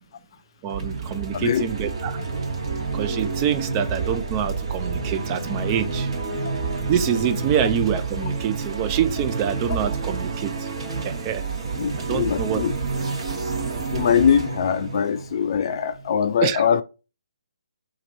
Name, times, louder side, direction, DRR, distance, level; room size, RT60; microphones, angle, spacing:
voice 1, 0.6-2.2 2.9-6.1 6.9-10.7 11.0-11.4 12.0-12.6 16.4-16.6, right 8 dB, 25° right, 0.4 m, -26 dB
sound 1, 0.7-16.1, right 4 dB, 50° right, 1.1 m, -29 dB
voice 2, 1.3-1.7 11.8-12.7 13.9-16.8, left 8 dB, 50° left, 0.4 m, -22 dB
2.9 x 2.5 x 4.0 m
hypercardioid pair, 150°, 4 cm